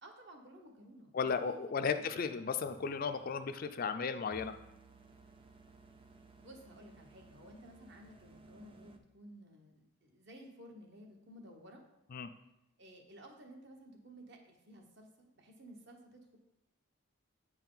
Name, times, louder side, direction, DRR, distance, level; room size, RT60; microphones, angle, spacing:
voice 1, 0.0-2.2 6.4-11.8 12.8-16.4, equal, 55° right, 2 dB, 1.1 m, -55 dB
voice 2, 1.1-4.5 12.1-12.3, left 5 dB, 45° left, 9 dB, 0.3 m, -35 dB
sound 1, 2.6-9.0, right 3 dB, 25° right, 0.4 m, -59 dB
8.6 x 4.5 x 3.9 m, 0.87 s
head